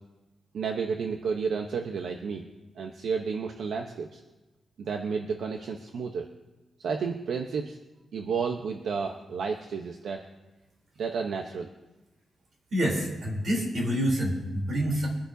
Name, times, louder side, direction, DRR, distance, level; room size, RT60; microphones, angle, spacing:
voice 1, 0.5-2.5 2.8-4.2 4.8-6.3 6.8-7.8 8.1-10.2 11.0-11.7, right 5 dB, 70° right, 3 dB, 0.9 m, -31 dB
voice 2, 12.7-15.1, equal, 45° right, -1 dB, 3.5 m, -27 dB
23.5 x 10.5 x 2.8 m, 1.1 s
wide cardioid pair, 175°, 0 cm